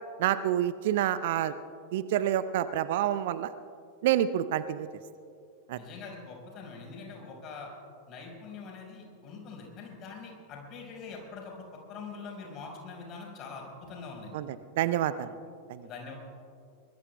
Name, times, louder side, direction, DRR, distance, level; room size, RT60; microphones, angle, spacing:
voice 1, 0.2-1.5 1.9-3.5 4.0-4.9 5.7-5.8 14.3-14.5 14.8-15.3 15.7-15.9, right 11 dB, 55° right, 15 dB, 0.5 m, -27 dB
voice 2, 5.7-7.7 8.1-14.4 15.8-16.1, left 4 dB, 35° left, -1 dB, 4.9 m, -44 dB
24.0 x 21.0 x 2.3 m, 2.4 s
figure-of-eight pair, 90°, 0 cm